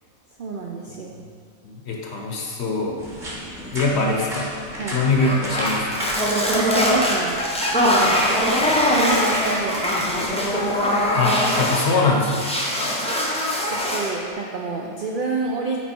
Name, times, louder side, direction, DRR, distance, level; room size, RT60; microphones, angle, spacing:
voice 1, 0.4-1.2 3.9-4.0 4.8-5.0 6.5-7.5 7.8-8.2 8.9-9.9 13.7-15.8, right 3 dB, 70° right, -1 dB, 0.5 m, -28 dB
voice 2, 1.6-3.0 3.7-4.5 4.9-6.0 11.1-12.6, left 3 dB, 55° left, 0 dB, 0.9 m, -22 dB
sound 1, 3.0-10.8, equal, 35° right, 1.6 m, -35 dB
sound 2, 5.2-11.9 12.2-14.2, equal, 10° left, 0.4 m, -22 dB
6.0 x 4.6 x 4.3 m, 2.3 s
omnidirectional pair, 1.5 m